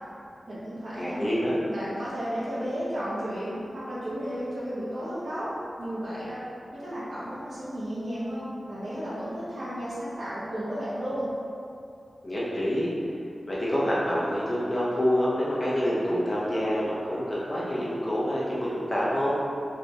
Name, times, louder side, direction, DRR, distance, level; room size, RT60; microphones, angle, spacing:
voice 1, 0.5-1.2 1.7-5.5 5.8-6.4 6.7-11.2, equal, 65° right, -11 dB, 1.3 m, -33 dB
voice 2, 1.0-1.6 12.2-12.9 13.5-19.3, equal, 25° left, -8 dB, 0.9 m, -27 dB
4.4 x 3.2 x 2.5 m, 2.5 s
wide cardioid pair, 110°, 0 cm